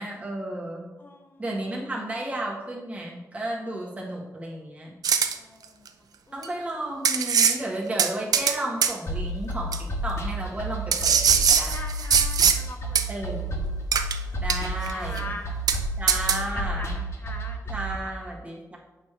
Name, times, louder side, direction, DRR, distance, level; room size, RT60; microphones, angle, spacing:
voice 1, 0.0-0.9 1.4-4.9 6.3-11.7 13.1-13.6 14.4-15.4 16.0-17.0 17.7-18.8, right 1 dB, 20° right, -4 dB, 1.7 m, -33 dB
voice 2, 1.0-1.4 5.3-5.9 6.3-6.4 11.5-13.4 13.7-13.8 14.2-14.4 14.9-15.6 16.5-18.3, left 2 dB, 30° left, 3 dB, 0.6 m, -42 dB
sound 1, 5.0-5.3 6.4-6.5 7.0-7.6 8.0-8.6 8.8-8.9 9.7-9.8 10.9-12.6 13.0-13.1 13.9-14.2 14.5-14.9 15.2-15.3 15.7-15.8 16.1-16.4, right 7 dB, 90° right, 0.5 m, -21 dB
sound 2, 9.1-18.0, right 1 dB, 45° left, 1.3 m, -31 dB
8.4 x 3.3 x 6.1 m, 1.1 s
wide cardioid pair, 145°, 6 cm